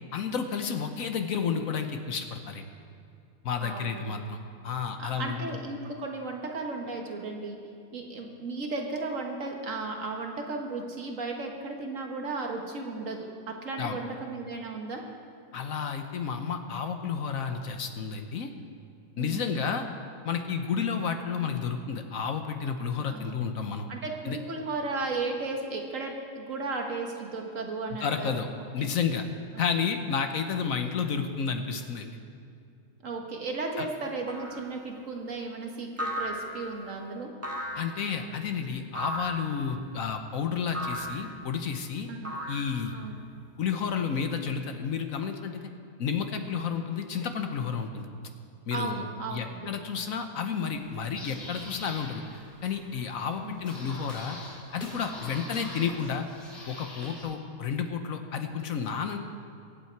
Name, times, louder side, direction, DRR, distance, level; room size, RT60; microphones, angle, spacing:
voice 1, 0.1-2.7 3.4-5.6 13.8-14.0 15.5-18.5 19.2-19.9 20.2-23.9 24.3-24.4 28.0-28.5 28.7-29.3 29.6-32.1 33.8-33.9 37.7-42.1 42.5-43.0 43.6-45.7 46.0-48.1 48.7-49.0 49.3-52.2 52.6-54.4 54.7-56.3 56.7-59.2, left 6 dB, 65° left, 6 dB, 1.2 m, -31 dB
voice 2, 3.6-4.1 5.0-7.6 7.9-13.3 13.6-15.0 19.2-19.5 23.1-23.3 23.9-28.4 28.8-28.9 33.0-37.3 42.1-42.3 42.9-43.2 48.7-49.7 53.4-53.6, right 3 dB, 55° right, 2 dB, 1.7 m, -35 dB
sound 1, 34.3-34.7 36.0-36.8 37.4-38.0 38.9-39.5 40.7-41.3 42.2-43.0, equal, 10° right, 1.4 m, -35 dB
sound 2, 50.7-57.2, left 1 dB, 40° left, 3.8 m, -45 dB
23.0 x 8.5 x 4.6 m, 2.4 s
omnidirectional pair, 1.7 m